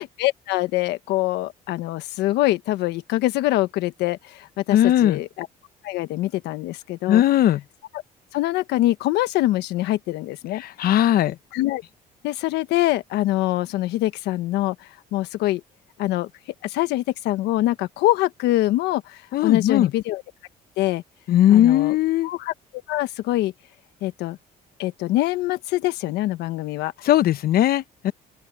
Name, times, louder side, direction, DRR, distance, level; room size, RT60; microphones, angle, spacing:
voice 1, 0.0-5.5 5.8-7.2 8.3-10.6 11.5-11.8 12.2-15.6 16.0-16.3 16.6-20.2 20.8-21.0 21.5-21.9 22.2-22.5 22.9-23.5 24.0-24.4 24.8-26.9, left 16 dB, 85° left, 1.4 m, -24 dB
voice 2, 4.7-5.2 7.1-7.6 10.6-11.4 19.3-19.9 21.3-22.3 27.0-28.1, left 12 dB, 65° left, 0.9 m, -18 dB
open air
cardioid pair, 110°, 17 cm